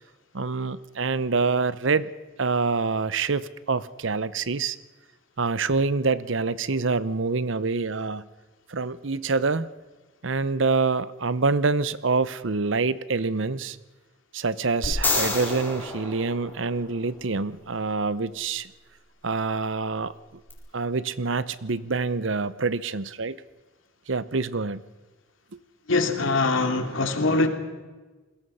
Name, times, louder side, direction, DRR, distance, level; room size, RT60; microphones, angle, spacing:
voice 1, 0.3-2.1 2.4-4.8 5.4-8.3 8.7-9.7 10.2-13.8 14.3-18.7 19.2-20.1 20.7-23.4 24.1-24.8, right 4 dB, 65° right, 16 dB, 0.8 m, -26 dB
sound 1, 14.8-17.1 20.5-20.6, left 3 dB, 10° left, 4.6 m, -29 dB
voice 2, 25.9-27.5, left 3 dB, 70° left, 6 dB, 2.7 m, -23 dB
29.0 x 21.5 x 5.6 m, 1.3 s
head